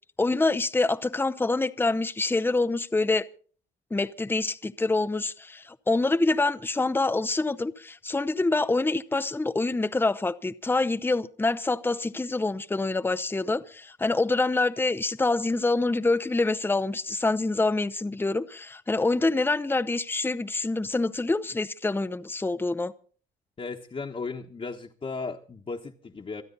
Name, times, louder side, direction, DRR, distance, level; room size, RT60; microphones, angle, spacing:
voice 1, 0.2-3.3 3.9-22.9, left 3 dB, 10° left, 0.7 m, -26 dB
voice 2, 23.6-26.4, left 4 dB, 30° left, 1.3 m, -36 dB
27.0 x 9.5 x 4.0 m
cardioid pair, 90°, 20 cm